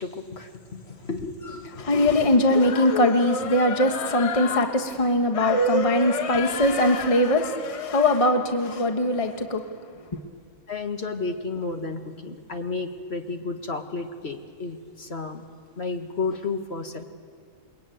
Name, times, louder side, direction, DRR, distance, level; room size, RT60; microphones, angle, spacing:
voice 1, 0.0-2.3 10.7-15.4 15.8-17.0, left 3 dB, 50° left, 1.9 m, -32 dB
voice 2, 1.8-9.7 10.1-10.2, left 1 dB, 25° left, 1.4 m, -21 dB
28.5 x 22.5 x 9.3 m
omnidirectional pair, 1.5 m